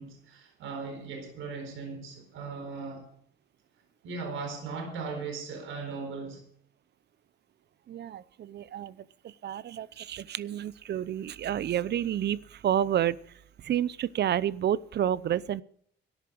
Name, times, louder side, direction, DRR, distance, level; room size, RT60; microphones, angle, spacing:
voice 1, 0.0-3.1 4.0-6.4, right 4 dB, 80° right, 4.3 m, -38 dB
voice 2, 7.9-8.9 9.4-13.2 13.6-15.6, right 10 dB, 60° right, 0.7 m, -29 dB
13.0 x 10.5 x 6.3 m
cardioid pair, 90°, 20 cm